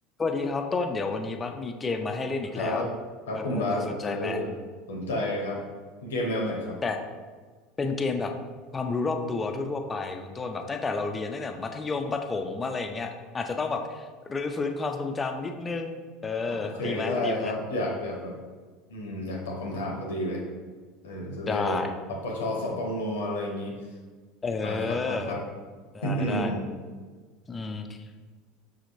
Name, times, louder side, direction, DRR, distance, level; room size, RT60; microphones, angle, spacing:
voice 1, 0.2-2.9 3.3-4.4 6.8-7.0 7.8-8.3 8.7-17.5 21.5-21.9 24.4-25.4 25.9-26.5 27.5-28.0, left 4 dB, 25° left, 5 dB, 0.5 m, -31 dB
voice 2, 2.6-2.9 3.3-4.5 4.9-5.6 6.0-6.8 16.5-18.4 18.9-20.4 21.0-21.8 22.1-23.7 24.6-25.4 26.0-26.6, left 1 dB, 75° left, 0 dB, 0.8 m, -30 dB
6.2 x 3.0 x 2.6 m, 1.5 s
hypercardioid pair, 75°, 0 cm